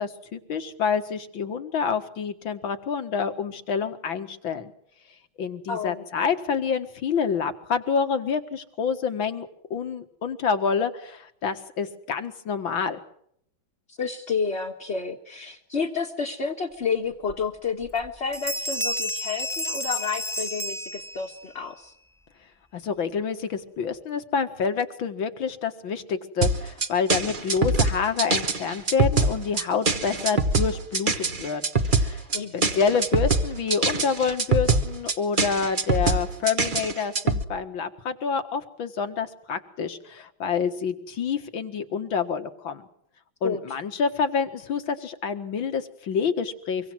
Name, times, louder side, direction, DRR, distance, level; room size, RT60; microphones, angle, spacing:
voice 1, 0.0-4.7 5.4-13.0 22.7-32.2 32.5-42.9 43.4-46.9, left 6 dB, 70° left, 8 dB, 2.5 m, -27 dB
voice 2, 5.7-6.0 13.9-21.9 32.3-32.8 43.4-43.8, left 5 dB, 35° left, 1 dB, 1.6 m, -30 dB
sound 1, 17.3-17.4 17.8-18.1 18.3-21.5, left 1 dB, ahead, 1.3 m, -31 dB
sound 2, 26.4-37.4, right 3 dB, 30° right, 1.2 m, -23 dB
24.5 x 24.5 x 6.2 m, 0.70 s
omnidirectional pair, 2.2 m